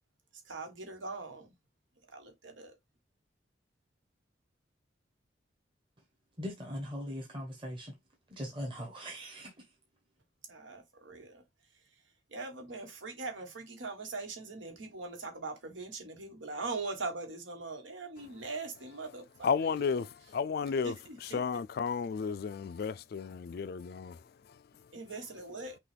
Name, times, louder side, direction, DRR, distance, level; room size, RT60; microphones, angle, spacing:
voice 1, 0.5-1.5 2.1-2.7 10.5-11.4 12.3-20.1 20.8-21.4 24.9-25.8, right 3 dB, 90° right, 1.5 m, -41 dB
voice 2, 6.4-7.9 8.3-9.6, equal, 25° right, 1.0 m, -40 dB
voice 3, 19.4-20.9 21.2-24.2, left 6 dB, 55° left, 0.3 m, -33 dB
5.9 x 2.4 x 3.3 m
head